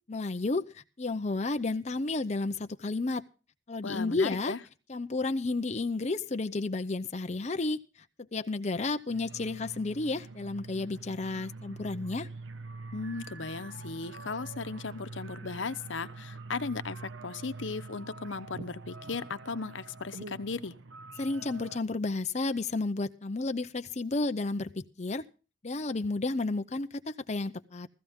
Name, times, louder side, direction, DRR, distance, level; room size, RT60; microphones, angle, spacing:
voice 1, 0.1-3.2 3.7-4.5 4.9-7.8 8.3-12.3 21.2-25.2 25.6-27.9, left 3 dB, 35° left, 0.6 m, -32 dB
voice 2, 3.8-4.6 12.9-20.7, left 4 dB, 85° left, 0.9 m, -36 dB
sound 1, 9.1-21.8, right 3 dB, 90° right, 1.0 m, -45 dB
15.5 x 14.5 x 3.6 m
head